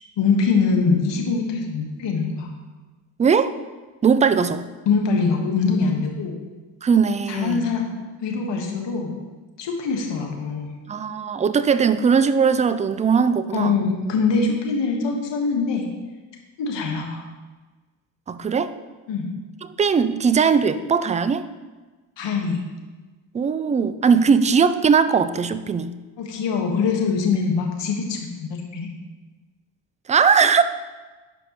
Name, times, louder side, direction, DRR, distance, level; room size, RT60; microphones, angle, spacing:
voice 1, 0.2-2.5 4.8-6.3 7.3-7.9 8.2-9.2 9.6-10.7 13.5-15.8 16.6-17.2 19.1-19.3 22.2-22.6 26.2-28.9, left 4 dB, 60° left, 1 dB, 1.6 m, -23 dB
voice 2, 3.2-3.5 4.0-4.7 6.8-7.7 10.9-13.8 15.0-15.1 18.3-18.7 19.6-21.5 23.3-25.9 30.1-30.6, right 6 dB, 15° right, 13 dB, 0.3 m, -19 dB
12.0 x 5.1 x 3.1 m, 1.3 s
hypercardioid pair, 55°, 50 cm